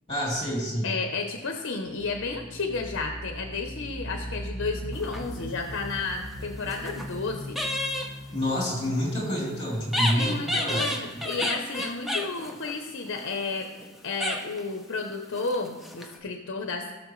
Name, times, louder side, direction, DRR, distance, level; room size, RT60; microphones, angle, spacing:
voice 1, 0.1-0.9 8.3-10.8, equal, 25° left, -3 dB, 3.1 m, -28 dB
voice 2, 0.8-7.6 10.1-16.9, left 4 dB, 55° left, 4 dB, 0.7 m, -32 dB
sound 1, 1.9-10.5, equal, 80° right, 1.7 m, -40 dB
sound 2, 4.9-5.7 6.4-7.2 7.5-8.1 9.9-13.9 14.2-14.7 15.3-16.2, left 1 dB, ahead, 0.7 m, -31 dB
17.0 x 6.4 x 3.1 m, 1.3 s
head